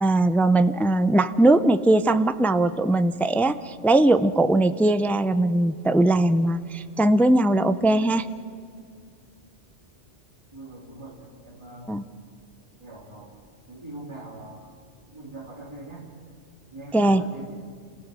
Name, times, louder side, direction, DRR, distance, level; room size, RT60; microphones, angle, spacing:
voice 1, 0.0-8.3 11.9-12.0 16.9-17.2, right 2 dB, ahead, 12 dB, 0.3 m, -20 dB
voice 2, 10.5-12.0 12.8-13.4 13.7-14.6 15.1-16.1 16.7-17.6, right 2 dB, 25° right, -1 dB, 2.5 m, -42 dB
28.0 x 17.5 x 7.5 m, 2.2 s
omnidirectional pair, 1.2 m